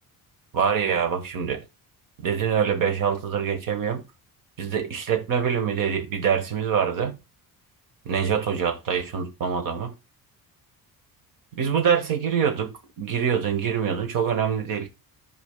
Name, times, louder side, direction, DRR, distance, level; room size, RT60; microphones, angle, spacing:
voice 1, 0.5-1.6 2.2-4.0 4.6-7.2 8.0-9.9 11.5-14.9, right 7 dB, 60° right, 1.5 m, -25 dB
14.5 x 4.9 x 2.2 m
cardioid pair, 165°, 37 cm